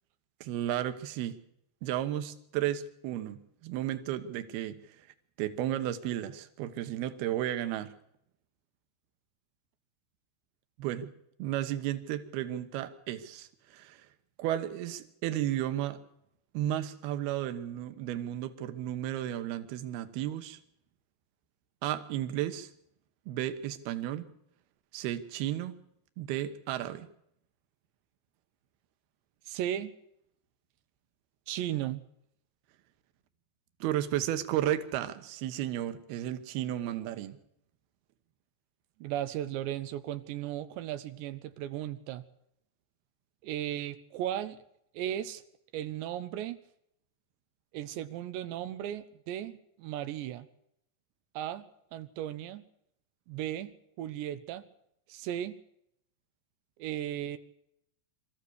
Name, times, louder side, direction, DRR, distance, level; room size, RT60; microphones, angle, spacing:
voice 1, 0.4-1.4 1.8-4.8 5.4-7.9 10.8-11.1 11.4-14.1 14.4-16.0 16.5-20.6 21.8-22.7 23.3-24.3 24.9-25.8 26.2-27.1 33.8-37.4, right 12 dB, 70° right, 9 dB, 3.1 m, -33 dB
voice 2, 29.5-29.9 31.5-32.0 39.0-42.3 43.4-44.6 44.9-45.4 45.7-46.6 47.7-50.5 51.3-51.6 51.9-52.6 53.3-53.7 54.0-54.6 55.1-55.6 56.8-57.4, right 11 dB, 90° right, 10 dB, 3.3 m, -36 dB
24.5 x 14.5 x 8.2 m, 0.75 s
omnidirectional pair, 4.9 m